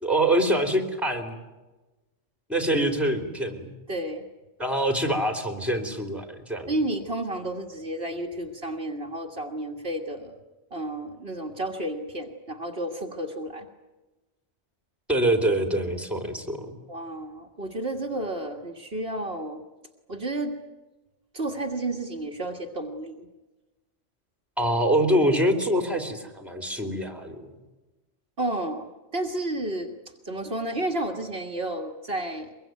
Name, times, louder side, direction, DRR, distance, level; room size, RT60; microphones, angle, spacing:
voice 1, 0.0-1.4 2.5-3.7 4.6-6.7 15.1-16.8 24.6-27.5, right 1 dB, ahead, 5 dB, 3.3 m, -25 dB
voice 2, 3.9-4.3 6.7-10.4 10.7-13.7 16.9-19.6 20.1-20.6 21.3-23.3 28.4-28.9 29.1-29.9 30.2-32.5, right 1 dB, 55° right, 2 dB, 2.0 m, -31 dB
23.5 x 22.5 x 9.3 m, 1.1 s
omnidirectional pair, 1.2 m